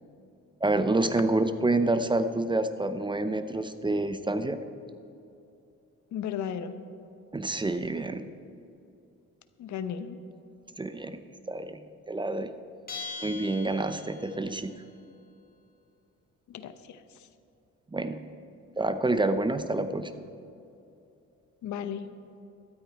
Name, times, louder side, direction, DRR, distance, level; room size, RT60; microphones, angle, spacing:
voice 1, 0.6-4.6 7.3-8.2 10.8-11.2 11.5-11.8 12.1-12.5 13.2-14.7 17.9-18.2 18.8-20.1, right 2 dB, 15° right, 10 dB, 0.6 m, -28 dB
voice 2, 6.1-6.8 9.6-10.2 16.5-17.0 21.6-22.1, left 8 dB, 70° left, 11 dB, 0.8 m, -35 dB
Bell, 12.9-14.5, left 4 dB, 30° left, 3.3 m, -40 dB
13.0 x 12.5 x 4.3 m, 2.7 s
cardioid pair, 90°, 30 cm